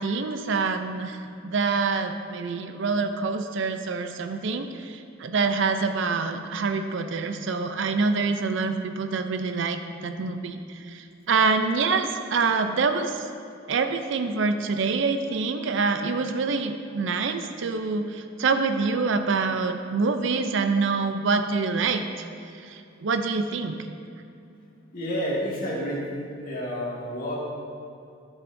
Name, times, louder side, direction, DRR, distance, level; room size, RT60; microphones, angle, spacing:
voice 1, 0.0-13.3 13.7-22.0 22.6-23.8, right 4 dB, 65° right, 7 dB, 0.5 m, -26 dB
voice 2, 24.9-27.4, equal, 45° left, -5 dB, 1.9 m, -30 dB
11.5 x 7.3 x 2.6 m, 2.6 s
head